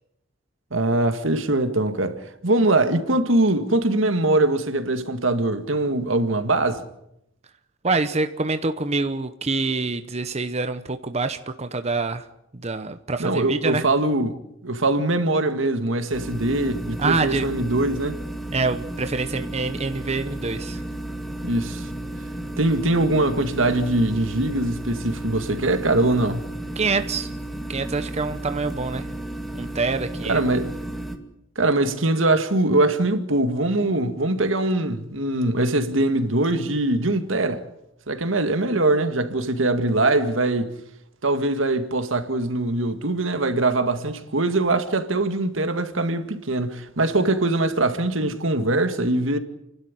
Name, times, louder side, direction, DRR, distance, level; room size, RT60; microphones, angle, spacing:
voice 1, 0.7-6.8 13.2-14.3 14.6-18.2 21.4-21.9 22.6-26.4 30.3-30.7 31.6-37.6 38.1-40.7 41.2-49.4, right 2 dB, 80° right, 2.0 m, -22 dB
voice 2, 7.8-12.3 12.5-13.8 17.0-17.5 18.5-20.8 26.8-27.3 27.7-29.1 29.5-30.4, right 3 dB, 35° right, 0.9 m, -26 dB
sound 1, 16.1-31.2, right 1 dB, ahead, 2.2 m, -33 dB
30.0 x 12.0 x 9.8 m
head